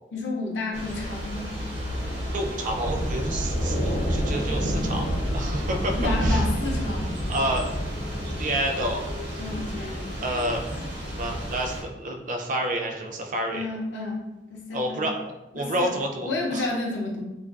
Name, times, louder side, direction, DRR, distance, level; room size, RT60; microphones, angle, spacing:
voice 1, 0.1-1.6 5.9-7.2 9.4-10.2 13.5-14.2 14.5-15.1 15.5-15.9 16.2-17.2, left 2 dB, 80° left, 0 dB, 0.5 m, -31 dB
Thunder / Rain, 0.7-11.8, equal, 75° right, 0.8 m, -29 dB
sound 1, 1.6-10.9, left 1 dB, 20° left, 0.4 m, -41 dB
voice 2, 2.3-5.1 5.3-6.4 7.3-7.7 8.4-9.1 10.2-10.6 11.0-13.7 14.7-15.1 15.5-16.7, right 1 dB, 45° right, 2 dB, 0.4 m, -29 dB
2.4 x 2.2 x 2.3 m, 1.0 s
head